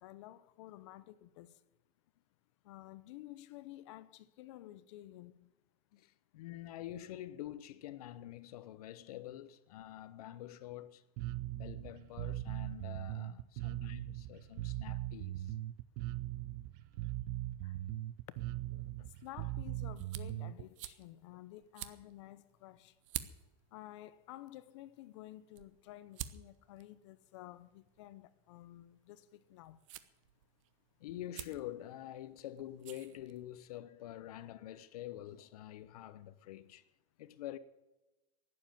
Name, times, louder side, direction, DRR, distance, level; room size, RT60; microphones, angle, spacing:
voice 1, 0.0-1.6 2.6-5.5 5.9-6.0 19.2-22.9 23.7-29.8, left 15 dB, 50° left, 0.8 m, -52 dB
voice 2, 6.0-11.0 11.5-15.5 17.6-17.8 18.8-19.1 31.0-36.8 37.2-37.6, left 13 dB, 75° left, 1.0 m, -47 dB
Bass guitar, 11.2-20.6, right 15 dB, 35° right, 0.4 m, -40 dB
sound 1, 19.0-33.8, right 13 dB, 55° right, 0.9 m, -51 dB
12.0 x 10.0 x 8.8 m
supercardioid pair, 180°, 19 cm